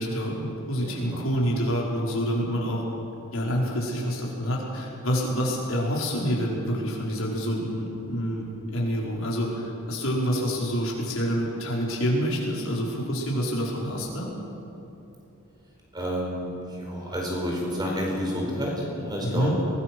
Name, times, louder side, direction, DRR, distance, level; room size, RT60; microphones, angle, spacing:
voice 1, 0.0-2.8 3.3-14.3 19.2-19.6, equal, 75° left, -3 dB, 4.8 m, -27 dB
voice 2, 0.8-1.2 15.9-19.6, equal, 20° right, -2 dB, 4.7 m, -30 dB
23.5 x 19.5 x 6.2 m, 2.9 s
head